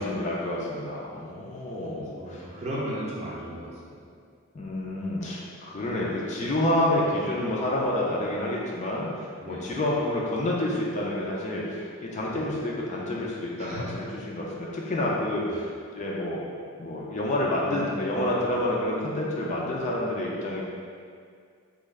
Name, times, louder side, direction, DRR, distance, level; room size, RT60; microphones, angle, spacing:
voice 1, 0.0-2.5 4.5-15.7 16.0-16.4 16.8-20.6, left 1 dB, 35° left, -4 dB, 0.4 m, -28 dB
voice 2, 1.8-4.0 9.4-9.7 12.3-12.4 13.6-14.0 15.5-15.6, equal, 30° right, -6 dB, 0.6 m, -36 dB
3.1 x 2.3 x 3.5 m, 2.1 s
head